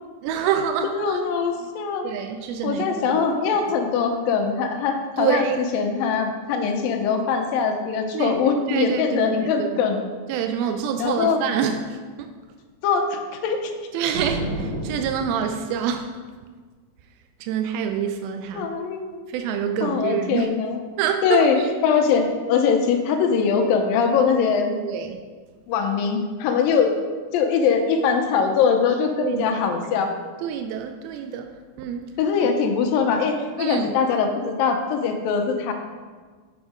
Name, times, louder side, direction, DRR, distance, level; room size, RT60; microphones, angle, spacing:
voice 1, 0.2-1.2 2.0-3.2 5.2-5.6 8.1-8.4 8.7-9.8 10.3-11.8 12.2-12.3 13.9-16.1 17.4-18.7 19.3-20.5 21.0-21.4 24.8-25.2 29.2-29.5 30.4-31.5 31.8-32.1 33.6-33.9, right 8 dB, 85° right, 6 dB, 2.4 m, -26 dB
voice 2, 0.8-2.1 2.6-10.0 11.0-11.4 12.8-13.7 18.5-19.2 19.8-20.8 21.2-21.6 21.8-24.7 25.7-26.9 27.3-30.1 32.2-35.7, left 6 dB, 80° left, 4 dB, 2.4 m, -22 dB
sound 1, 14.1-15.9, right 1 dB, 65° right, 1.2 m, -30 dB
7.9 x 6.4 x 5.0 m, 1.5 s
omnidirectional pair, 4.3 m